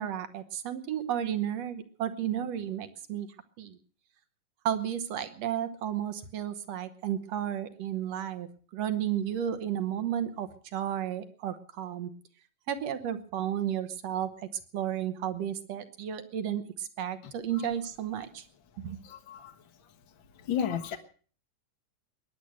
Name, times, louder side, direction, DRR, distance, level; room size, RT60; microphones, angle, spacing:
voice 1, 0.0-3.3 3.6-3.8 4.7-8.5 8.7-12.1 12.7-14.3 14.7-18.4 18.8-19.0, right 10 dB, 60° right, 11 dB, 2.0 m, -33 dB
voice 2, 19.0-19.5 20.4-21.0, left 8 dB, 55° left, 5 dB, 1.4 m, -33 dB
22.0 x 10.0 x 6.5 m, 0.43 s
omnidirectional pair, 3.8 m